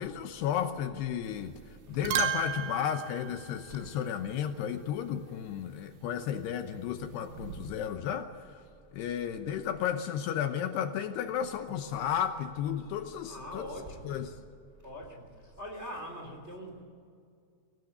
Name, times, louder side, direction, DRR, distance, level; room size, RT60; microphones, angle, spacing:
voice 1, 0.0-1.6 1.9-8.6 8.9-13.7 14.0-14.4, left 9 dB, 75° left, 7 dB, 2.8 m, -33 dB
sound 1, 1.3-1.6 1.9-4.4 6.9-7.8, right 9 dB, 85° right, 3.6 m, -35 dB
voice 2, 13.2-14.2 14.8-16.8, equal, 20° right, 2 dB, 2.5 m, -43 dB
23.5 x 18.5 x 8.3 m, 2.2 s
omnidirectional pair, 5.2 m